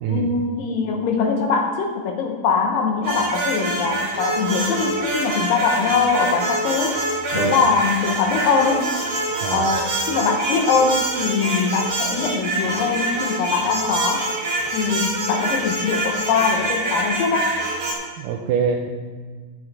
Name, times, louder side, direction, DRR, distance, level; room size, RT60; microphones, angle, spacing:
voice 1, 0.1-7.0 7.3-8.9 9.5-14.3 14.7-17.5, left 5 dB, 75° left, 3 dB, 2.3 m, -22 dB
sound 1, 3.0-17.9, right 2 dB, 40° right, 2.5 m, -25 dB
voice 2, 18.2-18.9, right 7 dB, 80° right, 1 dB, 2.0 m, -24 dB
9.9 x 7.2 x 4.7 m, 1.5 s
omnidirectional pair, 4.3 m